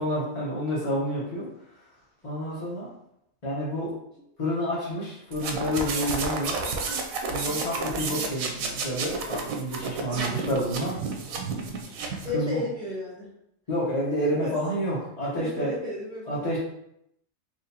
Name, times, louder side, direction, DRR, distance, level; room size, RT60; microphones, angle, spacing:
voice 1, 0.0-1.5 2.2-2.9 3.4-3.9 4.4-6.6 7.3-11.0 12.3-12.6 13.7-15.7 16.3-16.6, equal, 35° left, -7 dB, 0.8 m, -29 dB
sound 1, 5.3-12.3, right 4 dB, 90° right, 1.0 m, -31 dB
voice 2, 10.1-10.5 12.2-13.3 14.2-14.5 15.4-16.5, left 1 dB, 5° right, -9 dB, 0.3 m, -34 dB
4.1 x 2.6 x 2.7 m, 0.77 s
omnidirectional pair, 1.4 m